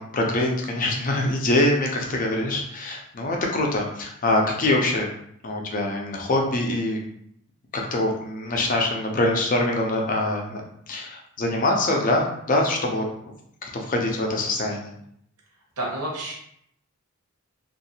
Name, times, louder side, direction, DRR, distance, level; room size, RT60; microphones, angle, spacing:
voice 1, 0.0-5.1 5.4-7.0 7.7-10.6 10.9-13.3 13.6-14.9, left 2 dB, 35° left, 1 dB, 0.5 m, -24 dB
voice 2, 15.8-16.3, right 1 dB, 85° right, -2 dB, 0.9 m, -29 dB
2.7 x 2.5 x 2.7 m, 0.71 s
head